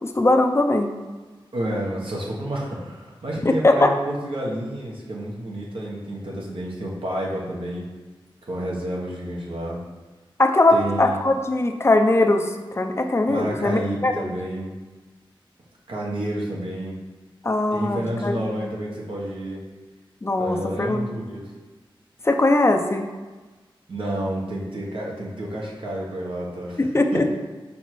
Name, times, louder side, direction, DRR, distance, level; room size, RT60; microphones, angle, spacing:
voice 1, 0.0-0.9 3.4-3.9 10.4-12.5 12.7-14.3 17.4-18.5 20.2-21.1 22.2-23.1 26.8-27.3, left 2 dB, 30° left, 5 dB, 0.6 m, -20 dB
voice 2, 1.5-7.8 8.4-9.8 10.7-11.2 13.2-14.7 15.9-17.0 17.7-19.6 20.4-21.5 23.9-26.8 27.1-27.2, right 1 dB, 70° right, -3 dB, 1.4 m, -30 dB
5.1 x 4.1 x 4.6 m, 1.3 s
wide cardioid pair, 100°, 9 cm